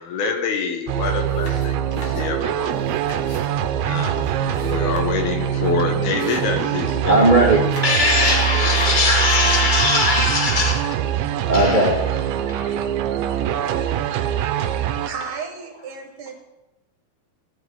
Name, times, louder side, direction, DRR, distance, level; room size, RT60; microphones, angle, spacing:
voice 1, 0.0-2.7 3.3-7.3 8.5-8.7, left 5 dB, 75° left, 4 dB, 3.2 m, -27 dB
sound 1, 0.9-15.1, right 10 dB, 80° right, 2.5 m, -23 dB
sound 2, 1.2-3.5 4.0-5.4 5.6-5.7 6.1-7.1 7.5-9.7, left 1 dB, 45° left, 3.3 m, -40 dB
sound 3, 1.9-12.6, right 2 dB, 25° left, 3.0 m, -44 dB
voice 2, 7.0-10.8 11.5-15.1, equal, 45° right, -2 dB, 0.6 m, -20 dB
voice 3, 15.1-16.3, right 6 dB, 65° right, 3 dB, 2.4 m, -33 dB
17.5 x 11.0 x 3.6 m, 1.0 s
omnidirectional pair, 4.5 m